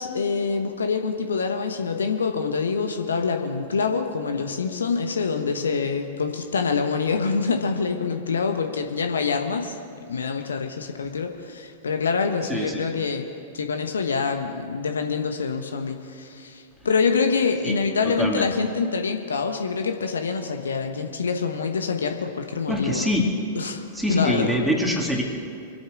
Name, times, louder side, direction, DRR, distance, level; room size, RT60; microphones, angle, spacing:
voice 1, 0.0-9.7 10.1-13.3 13.5-23.1 23.5-23.8 24.1-24.6, left 5 dB, 70° left, 5 dB, 1.2 m, -26 dB
voice 2, 12.5-12.8 17.6-17.8 18.0-18.5 22.7-23.3 24.0-25.2, left 1 dB, 5° right, 0 dB, 2.3 m, -24 dB
25.0 x 8.7 x 6.3 m, 2.5 s
figure-of-eight pair, 100°, 0 cm